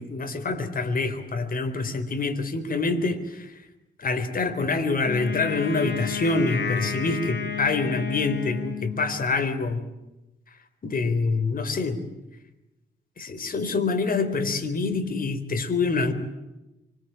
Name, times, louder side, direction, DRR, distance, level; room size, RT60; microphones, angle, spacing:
voice 1, 0.0-3.5 4.0-9.8 10.8-12.0 13.2-16.1, left 3 dB, 50° left, 7 dB, 4.1 m, -26 dB
Wind instrument woodwind instrument, 5.0-9.3, left 8 dB, 65° left, 6.6 m, -32 dB
26.0 x 25.0 x 8.9 m, 0.98 s
cardioid pair, 105°, 19 cm